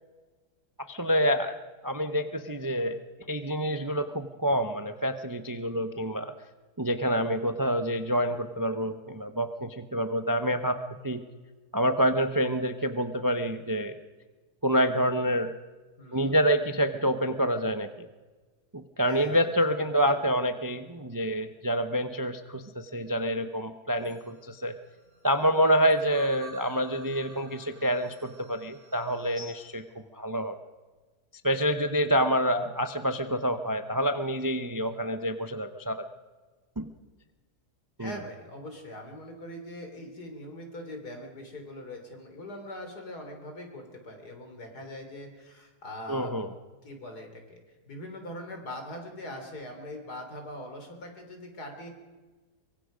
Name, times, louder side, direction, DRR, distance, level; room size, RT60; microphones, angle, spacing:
voice 1, 0.9-1.6 1.8-3.0 3.3-6.3 6.8-10.8 11.0-11.2 11.7-14.0 14.6-15.5 16.1-18.1 18.7-24.7 25.2-29.8 30.1-30.6 31.4-36.1 36.8-36.9 38.0-38.2 46.1-46.5, equal, 20° right, 8 dB, 0.6 m, -27 dB
voice 2, 16.0-16.4 19.0-19.5 20.0-20.1 38.0-46.3 46.8-47.6 47.9-51.9, left 1 dB, 70° left, 4 dB, 4.0 m, -42 dB
sound 1, 23.9-29.7, right 1 dB, 85° right, 8.0 m, -50 dB
24.0 x 23.0 x 5.1 m, 1.3 s
omnidirectional pair, 1.8 m